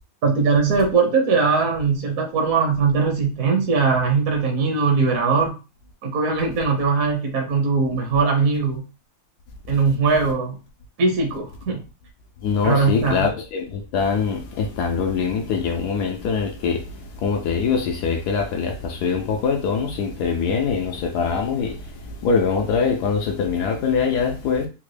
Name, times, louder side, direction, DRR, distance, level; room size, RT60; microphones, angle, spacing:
voice 1, 0.2-5.6 6.0-8.8 9.7-10.6 11.0-11.8 12.6-13.3, right 4 dB, 60° right, 0.9 m, -20 dB
voice 2, 12.4-16.8 17.2-21.8 22.2-24.7, left 5 dB, 80° left, 0.9 m, -23 dB
4.0 x 2.1 x 3.2 m
omnidirectional pair, 2.2 m